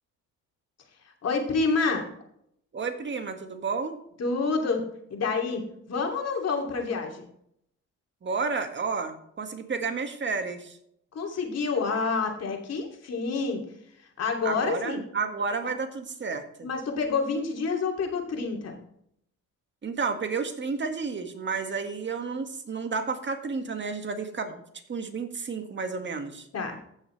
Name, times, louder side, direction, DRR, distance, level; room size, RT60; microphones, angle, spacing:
voice 1, 1.2-2.0 4.2-4.8 5.1-5.6 5.9-7.2 11.1-13.6 14.0-15.0 15.6-15.7 16.6-18.8 26.5-26.8, left 4 dB, 55° left, 2 dB, 2.9 m, -28 dB
voice 2, 2.7-4.0 8.2-10.8 14.4-16.7 19.8-24.5 24.9-26.5, right 4 dB, 40° right, 5 dB, 1.9 m, -31 dB
15.0 x 6.6 x 3.3 m, 0.71 s
cardioid pair, 90°, 30 cm